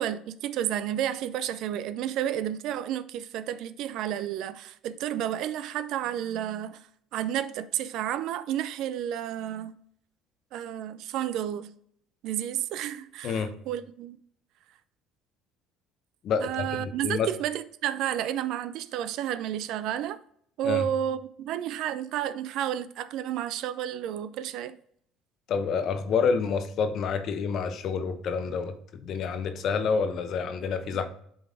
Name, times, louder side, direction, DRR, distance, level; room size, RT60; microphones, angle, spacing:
voice 1, 0.0-6.8 7.1-9.7 10.5-11.7 12.2-14.2 16.4-20.2 20.6-24.8 30.9-31.1, right 11 dB, 70° right, 0.4 m, -31 dB
voice 2, 16.2-17.3 20.6-20.8 25.5-28.7 29.0-31.1, left 5 dB, 55° left, 0.9 m, -28 dB
7.7 x 3.9 x 3.5 m
supercardioid pair, 85°, 0 cm